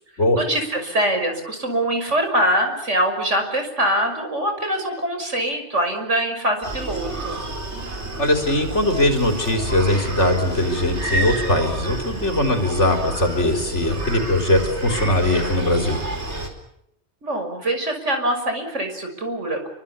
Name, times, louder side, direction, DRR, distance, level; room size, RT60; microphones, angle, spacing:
voice 1, 0.3-7.4 17.2-19.7, right 1 dB, 90° right, 5 dB, 6.2 m, -23 dB
Screaming, 6.6-16.5, right 1 dB, 70° right, 4.7 m, -29 dB
voice 2, 8.2-16.0, left 1 dB, 80° left, 5 dB, 4.9 m, -20 dB
29.0 x 24.5 x 7.2 m, 0.77 s
omnidirectional pair, 1.2 m